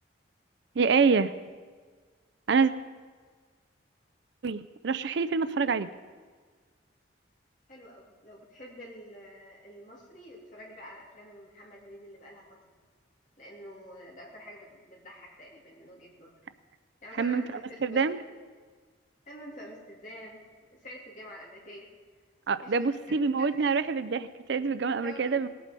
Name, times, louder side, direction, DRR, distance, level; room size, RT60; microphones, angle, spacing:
voice 1, 0.8-1.3 2.5-2.7 4.4-5.9 17.2-17.4 17.8-18.2 22.5-25.5, right 5 dB, 65° right, 14 dB, 0.4 m, -26 dB
voice 2, 7.7-12.8 13.4-16.3 17.0-18.1 19.3-20.4 20.7-21.9 22.6-23.9 24.9-25.5, equal, 40° left, -3 dB, 2.9 m, -47 dB
18.5 x 8.5 x 5.3 m, 1.5 s
head